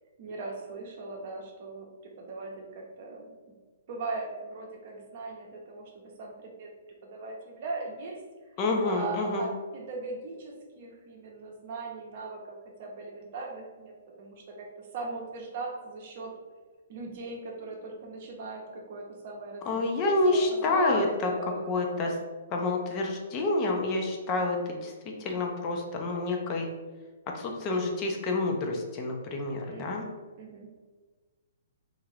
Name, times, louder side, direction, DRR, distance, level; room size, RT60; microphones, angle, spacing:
voice 1, 0.2-3.3 3.9-6.7 7.1-8.2 8.8-16.3 16.9-22.2 29.7-30.7, right 3 dB, 50° right, 0 dB, 0.7 m, -39 dB
voice 2, 8.6-9.5 19.6-22.1 22.5-26.7 27.3-30.0, left 2 dB, 30° left, 1 dB, 0.5 m, -28 dB
2.5 x 2.5 x 3.2 m, 1.3 s
figure-of-eight pair, 125°, 0 cm